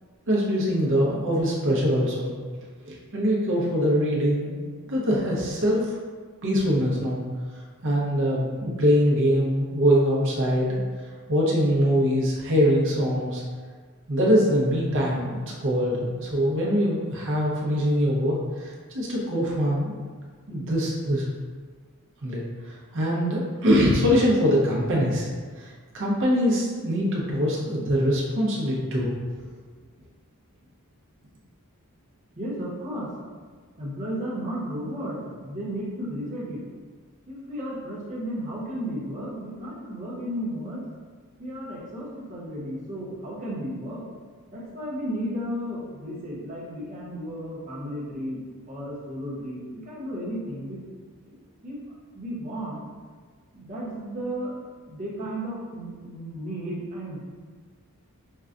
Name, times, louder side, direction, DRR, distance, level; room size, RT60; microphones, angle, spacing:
voice 1, 0.3-2.3 2.9-4.6 4.9-5.9 6.4-7.2 7.8-10.8 11.3-13.4 14.1-20.0 20.5-21.3 22.2-25.3 25.6-29.1, equal, 60° right, -4 dB, 0.8 m, -23 dB
voice 2, 32.4-33.1 33.8-36.6 37.3-40.8 41.4-44.0 44.5-48.4 48.7-50.8 51.2-51.4 51.6-51.8 52.1-52.8 53.5-54.6 54.9-57.2, equal, 35° right, -7 dB, 1.0 m, -33 dB
5.4 x 2.3 x 2.5 m, 1.5 s
head